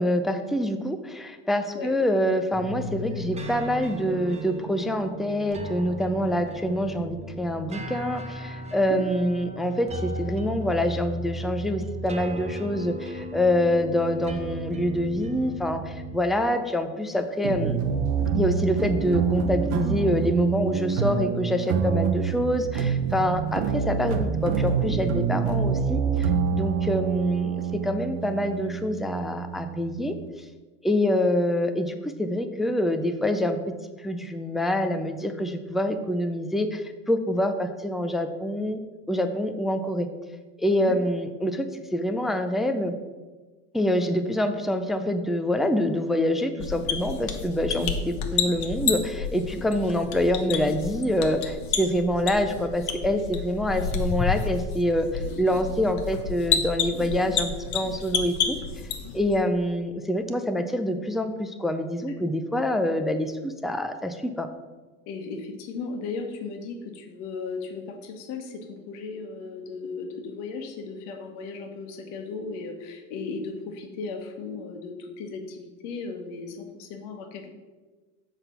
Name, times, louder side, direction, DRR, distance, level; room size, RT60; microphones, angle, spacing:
voice 1, 0.0-17.8 18.3-30.2 30.8-33.6 34.0-38.8 39.1-40.1 40.6-42.9 43.7-58.6 59.1-64.5, left 1 dB, ahead, 7 dB, 0.4 m, -26 dB
sound 1, 2.5-16.2, right 1 dB, 20° right, 0.7 m, -36 dB
sound 2, 17.4-30.3, right 6 dB, 60° right, 0.9 m, -27 dB
sound 3, 46.6-59.4, left 6 dB, 50° left, 1.1 m, -30 dB
voice 2, 65.1-77.5, left 4 dB, 70° left, 4 dB, 1.3 m, -36 dB
6.5 x 4.0 x 5.5 m, 1.3 s
hypercardioid pair, 95°, 36 cm